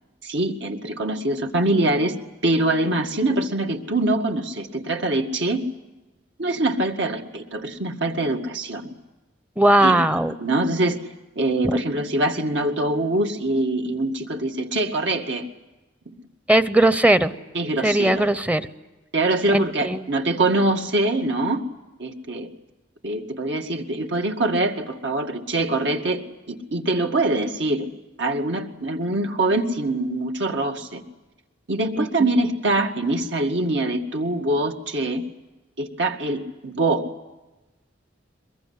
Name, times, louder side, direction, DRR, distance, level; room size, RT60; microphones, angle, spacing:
voice 1, 0.2-2.2 2.4-5.6 6.4-8.9 9.8-11.0 11.4-15.5 17.5-18.2 19.1-21.6 22.0-22.5 23.0-27.9 28.2-31.0 31.7-35.2 35.8-37.1, right 2 dB, 75° right, 4 dB, 2.1 m, -24 dB
voice 2, 9.6-10.3 11.6-11.8 16.5-17.3 17.8-18.7 19.5-20.0 32.0-32.3, right 1 dB, 10° right, 13 dB, 0.8 m, -19 dB
23.0 x 21.5 x 9.7 m, 1.1 s
head